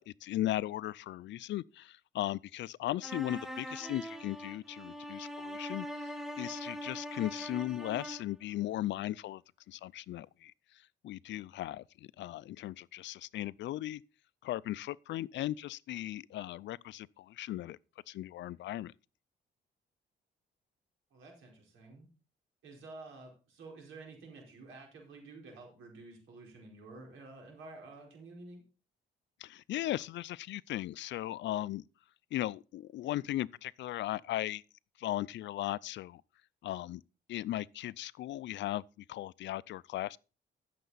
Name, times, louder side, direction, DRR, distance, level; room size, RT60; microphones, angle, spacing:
voice 1, 0.0-5.9 6.4-9.4 9.7-10.5 11.0-11.8 12.2-14.0 14.4-17.8 18.1-18.9 29.4-31.8 32.3-34.6 35.0-36.2 36.6-37.0 37.3-38.8 39.1-40.2, left 14 dB, 65° left, 0.4 m, -37 dB
sound 1, 3.0-8.4, equal, ahead, 1.2 m, -42 dB
voice 2, 21.1-22.1 22.6-28.6, right 3 dB, 80° right, 4.6 m, -50 dB
13.5 x 6.8 x 4.0 m
cardioid pair, 90°, 20 cm